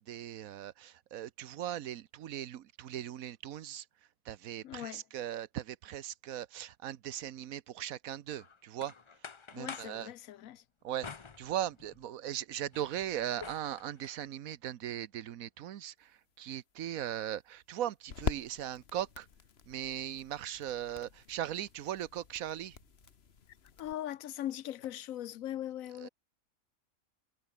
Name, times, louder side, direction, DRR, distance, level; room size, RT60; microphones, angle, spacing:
voice 1, 0.0-3.9 4.2-8.9 9.5-10.1 10.8-11.1 11.4-19.3 19.7-22.8 26.0-26.1, right 11 dB, 90° right, 1.3 m, -39 dB
voice 2, 4.6-5.0 9.6-10.6 23.8-26.1, left 12 dB, 80° left, 1.1 m, -40 dB
sound 1, 8.3-10.0 11.0-12.1 12.5-14.2, left 5 dB, 30° left, 0.5 m, -48 dB
sound 2, 16.0-23.9, left 6 dB, 50° left, 1.4 m, -44 dB
omnidirectional pair, 1.4 m